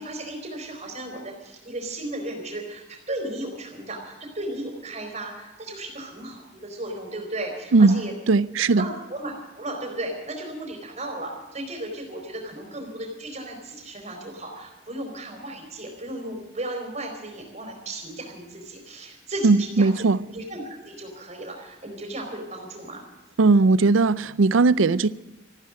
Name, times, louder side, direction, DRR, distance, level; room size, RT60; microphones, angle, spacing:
voice 1, 0.0-8.1 8.7-19.9 20.3-23.0, right 1 dB, 35° right, 4.3 m, -35 dB
voice 2, 8.3-8.9 19.4-20.2 23.4-25.1, right 3 dB, 80° right, 0.5 m, -18 dB
14.0 x 12.5 x 7.6 m
head